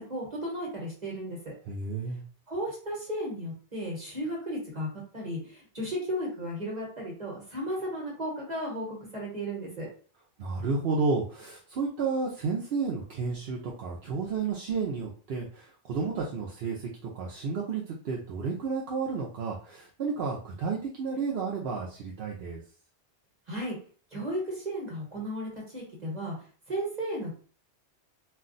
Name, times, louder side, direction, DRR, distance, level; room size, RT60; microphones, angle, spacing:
voice 1, 0.0-1.5 2.5-9.9 23.5-23.8 24.1-26.3 26.7-27.3, equal, 40° right, -3 dB, 1.2 m, -34 dB
voice 2, 1.7-2.2 10.4-22.6, right 4 dB, 65° right, -2 dB, 0.7 m, -32 dB
2.4 x 2.2 x 3.8 m, 0.42 s
omnidirectional pair, 1.2 m